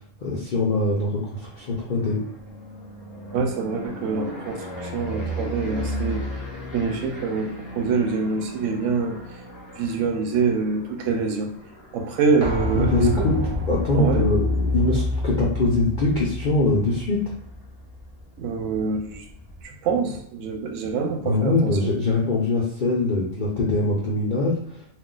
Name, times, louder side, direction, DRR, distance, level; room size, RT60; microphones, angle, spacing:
voice 1, 0.2-2.2 12.8-13.4 13.7-17.3 21.2-24.9, left 2 dB, 70° left, -4 dB, 0.4 m, -23 dB
sound 1, 1.1-15.0 15.5-15.9 16.2-16.3 16.6-19.6, equal, 15° left, 0.9 m, -37 dB
voice 2, 3.3-6.2 6.7-9.2 9.8-11.5 11.9-13.3 13.9-14.3 18.4-19.2 19.6-21.9, right 5 dB, 70° right, 4 dB, 0.8 m, -25 dB
sound 2, 12.4-18.0 18.3-18.4, left 2 dB, 15° right, 0.7 m, -27 dB
2.4 x 2.3 x 3.7 m, 0.72 s
omnidirectional pair, 1.6 m